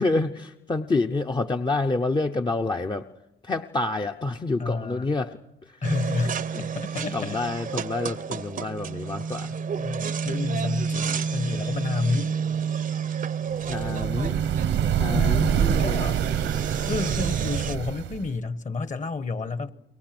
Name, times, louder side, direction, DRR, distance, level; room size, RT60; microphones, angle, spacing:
voice 1, 0.0-3.1 3.4-5.4 6.5-6.6 7.1-9.5 13.7-14.4 15.0-16.0, left 3 dB, 20° left, 5 dB, 0.8 m, -28 dB
voice 2, 4.6-5.1 5.8-7.4 9.7-12.4 15.1-16.2 16.9-19.7, left 4 dB, 40° left, 13 dB, 1.4 m, -30 dB
sound 1, 5.8-17.7, right 6 dB, 45° right, 0.7 m, -30 dB
sound 2, 13.6-18.4, right 10 dB, 80° right, 1.2 m, -26 dB
29.0 x 22.5 x 6.1 m, 0.92 s
cardioid pair, 90°, 20 cm